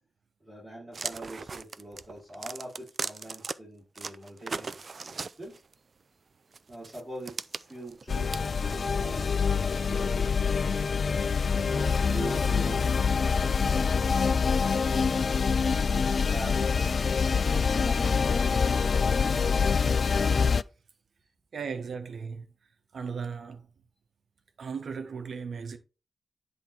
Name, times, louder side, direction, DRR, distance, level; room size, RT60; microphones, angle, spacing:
voice 1, 0.4-5.6 6.7-8.4 8.7-10.3 11.5-14.3 15.9-19.5, right 1 dB, 10° right, 4.4 m, -43 dB
sound 1, 0.9-3.5 4.0-5.7 6.5-9.2, right 4 dB, 50° right, 0.4 m, -38 dB
sound 2, 8.1-20.6, left 5 dB, 55° left, 0.3 m, -25 dB
voice 2, 21.5-22.5 22.9-23.7 24.6-25.8, right 5 dB, 70° right, 1.1 m, -36 dB
10.0 x 3.7 x 4.4 m
wide cardioid pair, 125°, 0 cm